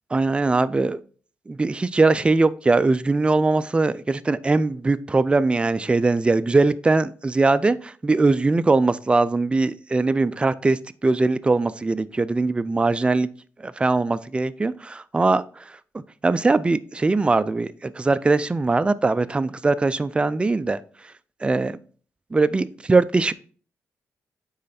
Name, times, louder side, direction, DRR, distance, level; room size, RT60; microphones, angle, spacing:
voice 1, 0.1-1.0 1.5-13.3 13.6-15.4 16.2-20.8 21.4-21.7 22.3-23.3, right 3 dB, 20° right, 0.3 m, -21 dB
9.4 x 3.2 x 4.2 m
cardioid pair, 95°, 6 cm